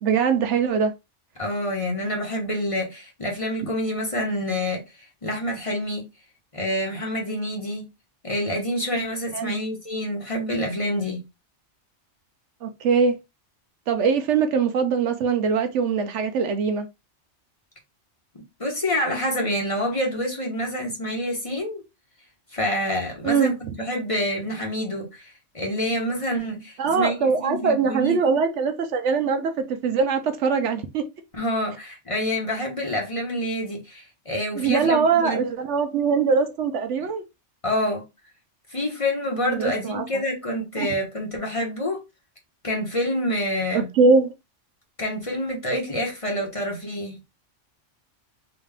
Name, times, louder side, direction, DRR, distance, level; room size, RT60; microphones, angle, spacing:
voice 1, 0.0-0.9 9.3-9.6 12.6-13.2 13.9-16.9 23.2-23.5 26.8-31.1 34.6-37.2 39.4-40.1 40.8-40.9 43.7-44.3, right 5 dB, 75° right, 0.9 m, -22 dB
voice 2, 1.4-4.8 5.2-6.1 6.5-7.9 8.2-11.2 18.6-21.8 22.5-28.2 31.4-35.4 37.6-38.0 38.7-42.0 42.6-43.9 45.0-47.2, left 1 dB, 30° left, 1.1 m, -27 dB
4.0 x 2.4 x 3.4 m
omnidirectional pair, 1.3 m